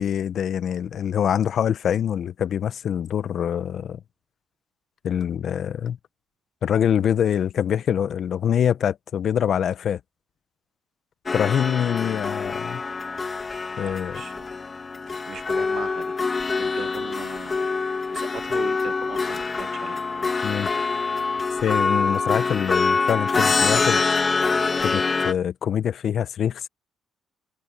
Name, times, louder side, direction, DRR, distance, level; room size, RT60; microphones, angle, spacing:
voice 1, 0.0-4.0 5.0-6.0 6.6-10.0 11.3-12.8 13.8-14.2 20.4-20.7 21.6-24.0 24.8-26.7, left 9 dB, 60° left, 0.9 m, -24 dB
sound 1, 11.3-25.3, left 4 dB, 30° left, 1.5 m, -25 dB
voice 2, 13.8-14.5 15.1-16.2 16.6-17.8 18.1-20.0, right 8 dB, 60° right, 0.5 m, -39 dB
cardioid pair, 90°, 0 cm